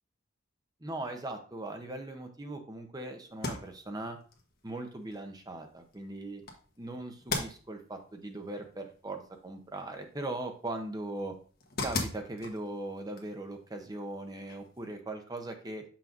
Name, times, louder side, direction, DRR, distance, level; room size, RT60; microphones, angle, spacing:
voice 1, 0.8-4.2 4.6-6.4 6.8-11.4 11.8-15.8, right 2 dB, 20° right, 5 dB, 0.8 m, -39 dB
sound 1, 3.3-14.9, left 3 dB, 50° left, 1.2 m, -42 dB
6.8 x 5.8 x 2.5 m, 0.40 s
head